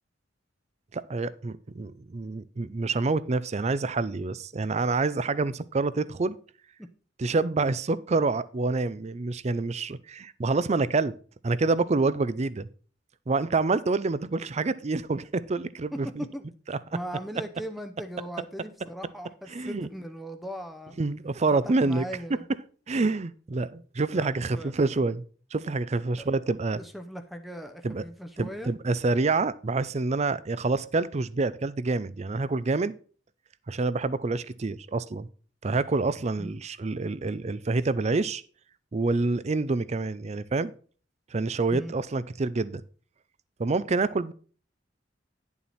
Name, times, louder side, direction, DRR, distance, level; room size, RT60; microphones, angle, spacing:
voice 1, 0.9-6.4 7.2-11.1 11.4-12.7 13.3-16.2 16.7-16.8 19.5-19.9 21.0-22.0 22.3-22.4 22.9-25.3 25.5-26.8 27.8-28.0 28.4-32.9 33.7-35.3 35.6-38.4 38.9-40.7 41.3-42.8 43.6-44.3, right 3 dB, 35° right, 0.5 m, -27 dB
voice 2, 15.9-16.5 16.9-21.0 21.5-22.4 24.1-24.7 26.2-26.3 26.8-28.8 36.4-36.6 41.7-42.0, equal, ahead, 0.7 m, -39 dB
10.5 x 7.2 x 4.2 m
head